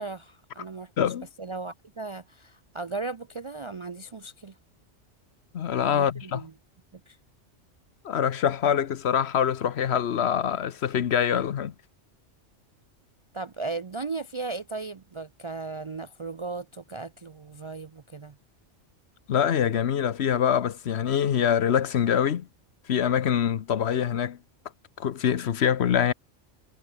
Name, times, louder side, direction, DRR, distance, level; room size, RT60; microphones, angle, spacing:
voice 1, 0.0-0.9 1.4-4.6 5.9-6.5 6.9-7.2 13.3-18.4, right 3 dB, 40° right, 0.4 m, -36 dB
voice 2, 1.0-1.3 5.5-6.4 8.0-11.7 19.3-22.5 22.9-24.4 25.0-26.1, left 8 dB, 65° left, 1.1 m, -24 dB
omnidirectional pair, 1.2 m